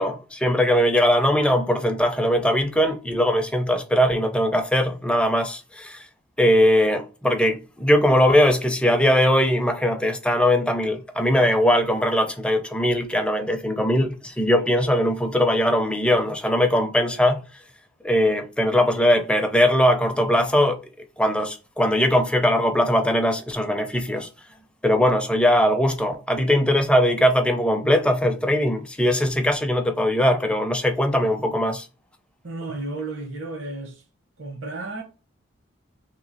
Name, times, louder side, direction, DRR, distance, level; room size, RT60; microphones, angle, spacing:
voice 1, 0.0-6.0 6.4-17.4 18.0-20.8 21.2-24.3 24.8-31.9, equal, 5° left, 0.4 m, -20 dB
voice 2, 32.4-34.0 34.4-35.0, right 2 dB, 80° right, 0.9 m, -33 dB
3.1 x 3.0 x 4.0 m
head